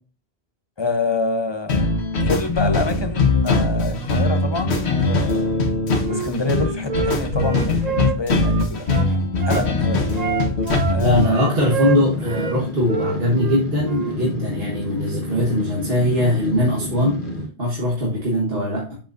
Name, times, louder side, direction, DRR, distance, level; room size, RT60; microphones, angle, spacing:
voice 1, 0.8-1.9 2.2-5.5 6.1-8.9 9.4-10.2 10.9-11.5, left 3 dB, 25° left, 6 dB, 0.8 m, -26 dB
sound 1, 1.7-11.3, left 2 dB, 80° left, 1.5 m, -21 dB
Wind instrument woodwind instrument, 6.0-9.7 10.1-12.6 12.8-14.2, right 7 dB, 45° right, 0.6 m, -28 dB
voice 2, 11.0-17.2 17.6-19.0, left 1 dB, 60° right, -3 dB, 1.7 m, -21 dB
sound 2, 11.1-17.5, left 1 dB, 50° left, 1.8 m, -30 dB
7.7 x 7.1 x 2.6 m, 0.39 s
omnidirectional pair, 1.1 m